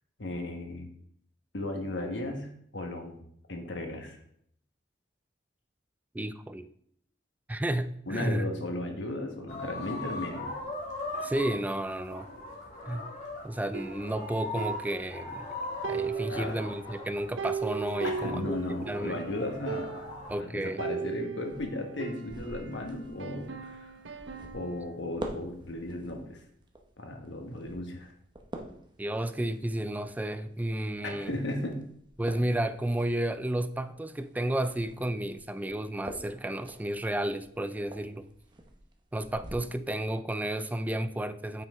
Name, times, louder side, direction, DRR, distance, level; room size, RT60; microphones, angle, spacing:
voice 1, 0.2-0.9 1.5-2.5 2.7-3.2 3.5-4.2 8.1-10.5 16.3-16.6 18.0-24.0 24.5-26.4 27.0-28.1 31.0-31.7, left 1 dB, 80° left, 3 dB, 1.3 m, -35 dB
voice 2, 6.1-6.7 7.5-8.5 11.2-12.3 12.9-13.1 13.4-15.5 15.9-19.2 20.3-20.8 29.0-31.3 32.2-38.3 39.1-41.6, right 1 dB, 10° right, 11 dB, 0.3 m, -32 dB
sound 1, 9.5-20.3, left 2 dB, 40° left, 2.2 m, -40 dB
sound 2, 13.7-15.5 15.8-19.1 19.4-19.5 19.7-20.3 20.8-22.8 23.2-24.9, right 6 dB, 90° right, 0.5 m, -38 dB
sound 3, 21.4-39.5, right 1 dB, 25° right, 0.9 m, -48 dB
5.8 x 5.7 x 4.4 m, 0.67 s
head